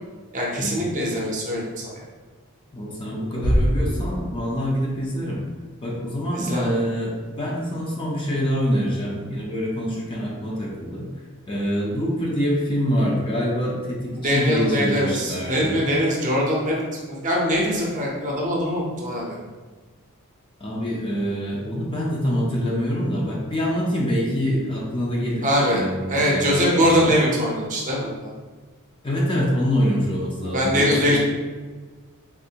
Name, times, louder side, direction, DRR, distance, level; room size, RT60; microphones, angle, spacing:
voice 1, 0.3-1.6 1.9-2.0 6.3-6.8 14.1-19.4 25.4-25.8 26.1-28.3 30.5-31.2, equal, 35° right, -3 dB, 0.6 m, -22 dB
voice 2, 2.7-5.4 5.8-11.1 11.5-15.8 20.6-27.1 29.0-31.2, equal, 25° left, -4 dB, 0.5 m, -25 dB
sound 1, 3.4-5.0, equal, 65° left, 0.7 m, -24 dB
3.5 x 2.5 x 2.8 m, 1.3 s
head